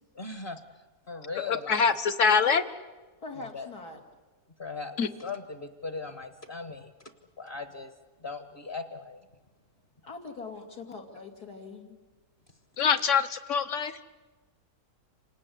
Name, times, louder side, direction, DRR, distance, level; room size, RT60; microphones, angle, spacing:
voice 1, 0.1-0.6 1.1-2.0 3.3-3.7 4.6-6.9 7.4-7.9 8.2-9.2 13.0-13.1, left 4 dB, 35° left, 9 dB, 1.3 m, -39 dB
voice 2, 1.4-2.6 5.0-5.1 12.8-13.9, left 6 dB, 55° left, 11 dB, 1.3 m, -24 dB
voice 3, 3.2-4.0 10.0-12.0, left 3 dB, 80° left, 1 dB, 3.3 m, -42 dB
27.5 x 19.0 x 9.4 m, 1.2 s
omnidirectional pair, 1.7 m